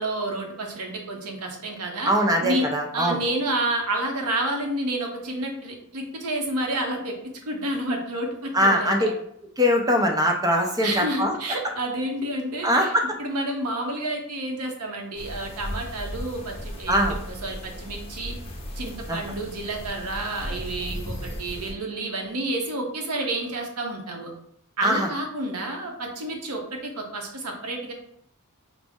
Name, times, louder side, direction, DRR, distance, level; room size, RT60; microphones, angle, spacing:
voice 1, 0.0-2.1 2.4-2.7 2.9-7.1 7.5-9.1 10.8-12.9 13.2-18.3 18.8-24.3 24.8-27.9, right 1 dB, 85° right, 2 dB, 0.8 m, -30 dB
voice 2, 2.1-3.2 8.5-9.0 9.6-11.3 12.6-13.0 16.9-17.2 19.1-19.2 24.8-25.1, equal, 15° right, 3 dB, 0.4 m, -21 dB
sound 1, 15.2-21.7, equal, 25° left, 0.7 m, -36 dB
5.0 x 2.0 x 3.5 m, 0.70 s
head